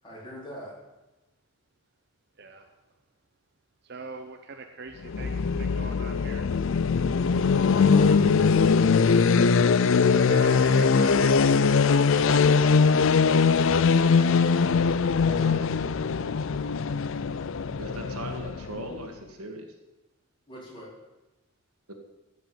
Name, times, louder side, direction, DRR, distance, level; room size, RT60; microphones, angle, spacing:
voice 1, 0.0-0.8 7.7-8.3 13.9-14.9 15.2-16.3 20.5-20.9, equal, 20° left, -5 dB, 4.5 m, -42 dB
voice 2, 2.4-2.7 3.8-6.5 9.2-9.6 10.0-12.5, right 4 dB, 50° right, 5 dB, 0.9 m, -41 dB
sound 1, 5.0-18.9, left 5 dB, 60° left, 0.4 m, -21 dB
voice 3, 17.8-19.7 21.9-22.0, right 1 dB, 80° right, 3 dB, 2.0 m, -38 dB
14.5 x 6.0 x 8.6 m, 1.0 s
head